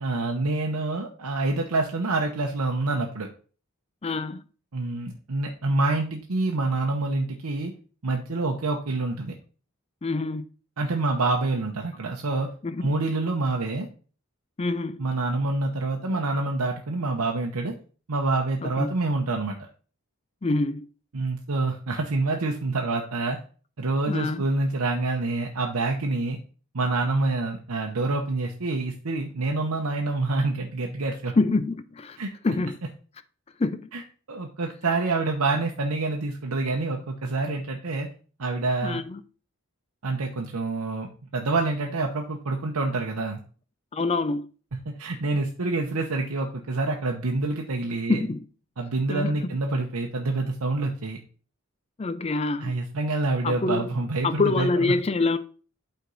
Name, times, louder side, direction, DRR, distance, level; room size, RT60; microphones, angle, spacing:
voice 1, 0.0-3.3 4.7-7.7 8.0-9.3 10.8-12.5 12.8-13.9 15.0-17.7 18.1-19.6 21.1-23.4 23.8-26.4 26.7-31.3 32.2-32.3 33.9-34.0 34.3-38.1 38.4-39.0 40.0-43.4 44.9-48.2 48.8-51.2 52.6-54.7, right 3 dB, 90° right, 0.8 m, -27 dB
voice 2, 4.0-4.4 10.0-10.5 12.6-12.9 14.6-15.0 18.6-18.9 20.4-20.9 24.1-24.4 31.4-32.2 32.4-32.8 33.6-33.9 38.8-39.2 43.9-44.5 48.1-48.5 49.1-49.3 52.0-52.7 53.4-53.8 54.2-55.4, left 3 dB, 25° left, 0.4 m, -26 dB
8.3 x 4.5 x 3.9 m
head